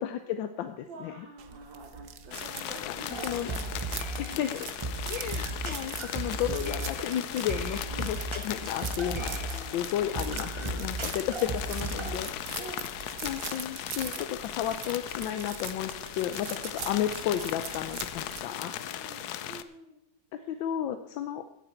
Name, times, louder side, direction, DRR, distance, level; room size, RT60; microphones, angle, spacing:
voice 1, 0.0-1.1 3.2-3.5 4.2-4.7 5.0-8.2 8.4-12.3 13.2-18.7 20.5-21.5, left 10 dB, 85° left, 8 dB, 1.4 m, -33 dB
voice 2, 0.9-4.4 5.0-5.3 7.9-8.1 9.4-9.8 11.9-12.2 12.5-13.2 15.9-16.7 18.6-20.0 20.3-20.7, right 2 dB, 85° right, -2 dB, 2.4 m, -48 dB
sound 1, 1.4-18.4, right 8 dB, 55° right, 1.0 m, -43 dB
sound 2, 2.3-19.6, left 11 dB, 70° left, 1.0 m, -38 dB
sound 3, 3.1-12.2, right 2 dB, 40° right, 0.4 m, -36 dB
16.5 x 7.9 x 4.4 m, 0.81 s
omnidirectional pair, 2.0 m